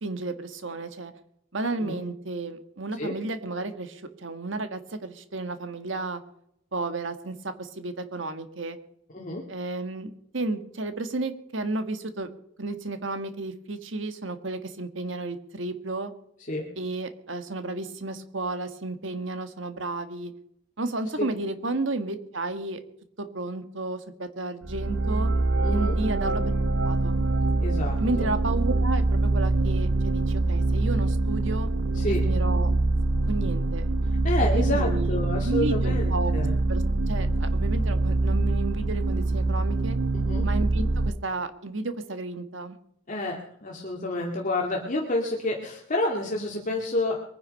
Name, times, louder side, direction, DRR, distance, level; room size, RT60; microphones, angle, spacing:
voice 1, 0.0-1.1 1.5-6.2 6.7-8.8 9.5-12.3 12.6-16.1 16.7-20.3 20.8-22.8 23.2-25.3 25.7-26.4 26.8-27.2 28.0-31.7 32.0-32.7 33.3-33.9 34.5-36.3 36.7-40.0 40.4-42.8, right 2 dB, 65° right, 9 dB, 1.6 m, -32 dB
sound 1, 24.6-41.1, right 2 dB, 85° right, 0.9 m, -24 dB
voice 2, 25.6-26.0 27.6-28.3 31.9-32.2 34.2-36.5 40.1-40.5 43.1-47.2, left 1 dB, 40° left, -1 dB, 2.2 m, -29 dB
22.5 x 10.0 x 5.4 m, 0.73 s
head